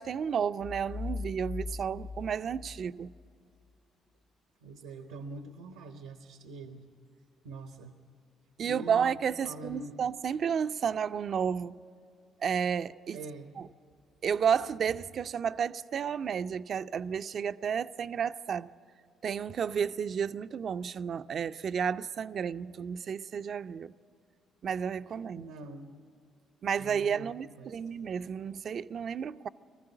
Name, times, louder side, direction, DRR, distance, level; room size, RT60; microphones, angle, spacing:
voice 1, 0.0-3.1 8.6-11.8 12.4-13.2 13.6-13.7 14.2-18.7 19.2-23.9 24.6-25.5 26.6-29.5, right 7 dB, 55° right, 0.4 m, -32 dB
sound 1, 0.6-3.3, left 3 dB, 50° left, 1.1 m, -40 dB
voice 2, 4.6-6.9 7.4-8.0 8.6-10.0 13.1-13.6 25.3-26.0 26.8-27.8, right 2 dB, 90° right, 0.9 m, -45 dB
20.5 x 14.5 x 9.9 m
hypercardioid pair, 50°, 0 cm